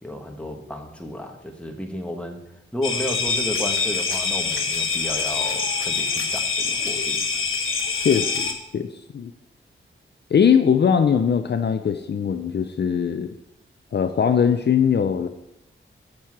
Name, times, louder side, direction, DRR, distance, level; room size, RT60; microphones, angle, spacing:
voice 1, 0.0-2.4 2.7-7.2, equal, 5° left, 2 dB, 1.2 m, -33 dB
sound 1, 2.8-8.5, left 5 dB, 75° left, 1.2 m, -25 dB
voice 2, 8.0-8.9 9.1-9.3 10.3-13.3 13.9-15.3, left 7 dB, 55° left, 7 dB, 0.5 m, -20 dB
7.5 x 7.3 x 4.7 m, 0.87 s
wide cardioid pair, 105°, 21 cm